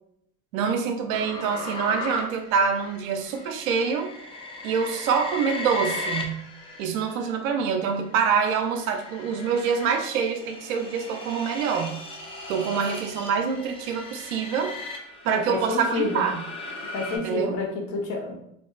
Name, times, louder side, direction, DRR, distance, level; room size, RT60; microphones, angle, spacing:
voice 1, 0.5-4.1 4.6-6.4 6.8-12.0 12.5-14.7 15.2-16.4 17.1-17.5, right 6 dB, 80° right, 6 dB, 0.5 m, -26 dB
sound 1, 1.1-7.3 7.9-17.2, left 2 dB, 15° left, 0.4 m, -37 dB
voice 2, 15.3-16.2 16.9-18.4, left 3 dB, 60° left, 0 dB, 0.9 m, -29 dB
2.5 x 2.3 x 2.3 m, 0.74 s
hypercardioid pair, 80°, 40 cm